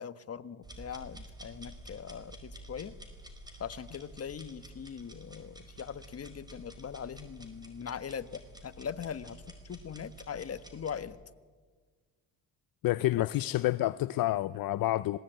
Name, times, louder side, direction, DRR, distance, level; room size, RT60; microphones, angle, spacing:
voice 1, 0.0-2.9 3.6-9.4 9.7-11.2 13.2-13.3, left 7 dB, 35° left, 1.3 m, -41 dB
sound 1, 0.6-11.0, right 1 dB, 10° right, 4.8 m, -50 dB
voice 2, 12.8-15.2, left 16 dB, 60° left, 0.6 m, -28 dB
26.0 x 19.5 x 9.1 m
supercardioid pair, 75°, 40 cm